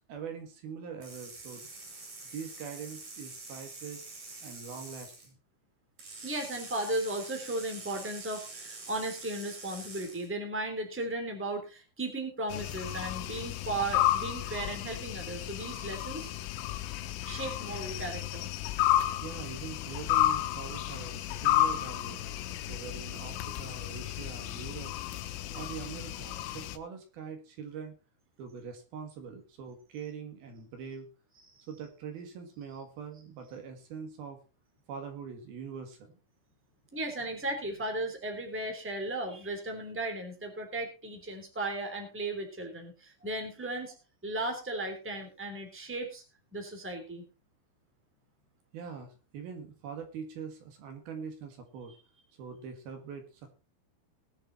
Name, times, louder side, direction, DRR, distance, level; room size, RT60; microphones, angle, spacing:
voice 1, 0.1-1.7 2.3-4.0 4.4-5.4 19.2-22.3 22.7-24.9 25.5-27.9 28.4-31.1 31.7-34.4 34.9-36.1 48.7-51.9 52.4-53.5, right 6 dB, 60° right, 6 dB, 3.0 m, -43 dB
sound 1, 1.0-5.3 6.0-10.3, right 3 dB, 45° right, 7.1 m, -46 dB
voice 2, 6.2-16.3 17.2-18.5 31.5-31.7 36.9-43.9 44.2-46.2 46.5-47.2, right 2 dB, 5° right, 4 dB, 1.9 m, -36 dB
sound 2, 12.5-26.8, left 13 dB, 90° left, 3.5 m, -32 dB
20.5 x 6.9 x 4.1 m, 0.31 s
omnidirectional pair, 5.6 m